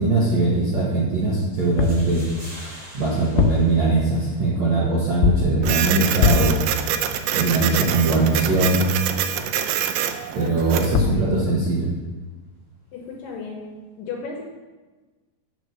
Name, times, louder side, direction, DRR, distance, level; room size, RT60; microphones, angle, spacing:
voice 1, 0.0-2.2 2.9-6.6 7.3-8.8 10.3-11.9, right 3 dB, 60° right, -7 dB, 1.9 m, -21 dB
sound 1, 1.5-4.6, equal, 10° right, 2.1 m, -44 dB
sound 2, 1.8-2.1 3.2-3.8 5.2-5.6 6.2-6.6 10.6-10.7 10.9-11.3, left 6 dB, 90° left, 2.1 m, -20 dB
Printer, 5.6-11.0, right 9 dB, 80° right, 2.5 m, -25 dB
voice 2, 11.0-11.4 12.9-13.7 14.0-14.4, left 5 dB, 75° left, 0 dB, 2.2 m, -34 dB
8.8 x 5.1 x 6.6 m, 1.3 s
omnidirectional pair, 4.8 m